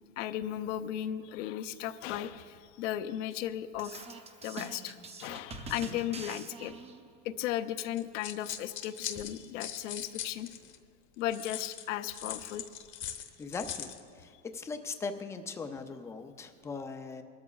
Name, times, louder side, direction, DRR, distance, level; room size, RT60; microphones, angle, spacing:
voice 1, 0.2-4.1 4.4-6.7 7.2-10.5 11.2-12.7, left 11 dB, 75° left, 11 dB, 0.7 m, -36 dB
sound 1, 3.7-7.2, right 3 dB, 15° right, 0.7 m, -44 dB
sound 2, 8.0-10.8 11.3-14.0, left 10 dB, 35° left, 0.8 m, -40 dB
voice 2, 13.4-17.2, left 4 dB, 10° left, 7 dB, 0.3 m, -40 dB
21.0 x 13.5 x 2.3 m, 2.2 s
supercardioid pair, 135°, 37 cm